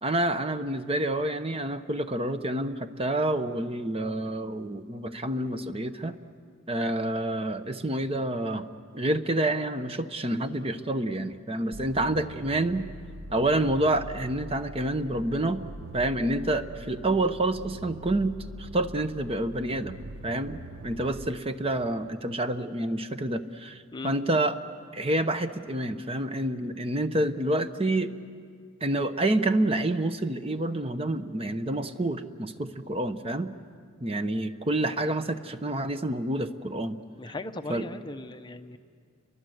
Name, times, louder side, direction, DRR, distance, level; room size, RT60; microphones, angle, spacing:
voice 1, 0.0-6.2 6.7-8.7 8.9-12.9 13.3-15.6 15.9-20.0 20.2-24.6 24.9-28.1 28.8-33.5 34.0-37.0 37.7-37.9, right 1 dB, 30° right, 10 dB, 0.9 m, -28 dB
sound 1, 11.7-21.3, right 1 dB, 80° right, 1.0 m, -43 dB
voice 2, 37.2-38.8, left 2 dB, 20° left, 8 dB, 0.8 m, -38 dB
30.0 x 23.5 x 7.9 m, 2.1 s
head